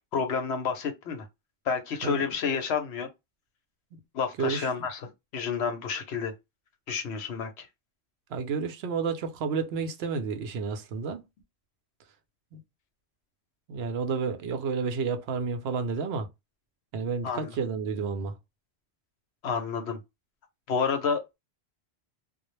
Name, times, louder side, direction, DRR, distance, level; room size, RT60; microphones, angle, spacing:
voice 1, 0.1-1.3 1.7-3.1 4.1-6.3 6.9-7.7 17.2-17.5 19.4-20.0 20.7-21.3, left 6 dB, 75° left, 0.9 m, -30 dB
voice 2, 8.3-11.2 12.5-12.6 13.7-16.3 16.9-18.3, right 5 dB, 70° right, 0.8 m, -30 dB
2.3 x 2.0 x 2.9 m
omnidirectional pair, 1.1 m